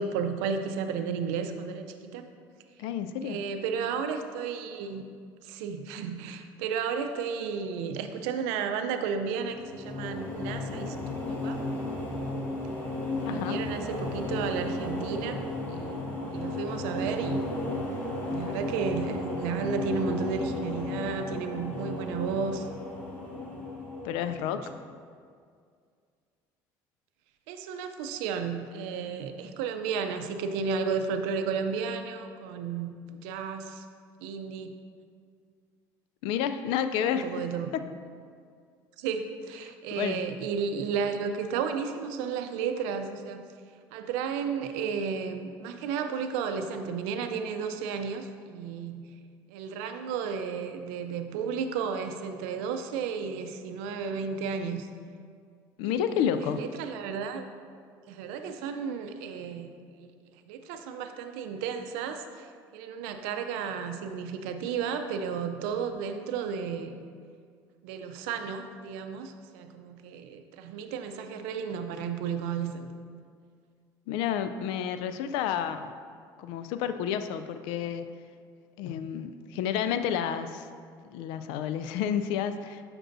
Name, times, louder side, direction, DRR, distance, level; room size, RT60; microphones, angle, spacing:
voice 1, 0.0-2.3 3.2-5.0 5.4-11.0 11.3-11.6 13.2-15.4 15.7-17.4 18.2-22.7 24.2-24.5 27.5-33.8 34.2-34.7 37.0-37.7 39.0-43.5 43.9-49.1 49.5-54.9 55.8-56.1 56.3-57.4 58.1-59.7 60.0-62.5 62.7-67.0 67.8-72.9, right 6 dB, 90° right, 7 dB, 0.5 m, -33 dB
voice 2, 2.8-3.4 13.2-13.6 24.0-24.6 36.2-37.3 37.7-37.8 39.9-40.2 55.8-56.6 74.1-75.9 76.4-78.1 78.8-80.7 81.1-82.8, left 9 dB, 80° left, 10 dB, 0.4 m, -30 dB
sound 1, 9.5-24.8, left 2 dB, 20° left, 1.6 m, -34 dB
7.7 x 6.0 x 2.6 m, 2.1 s
supercardioid pair, 100°, 8 cm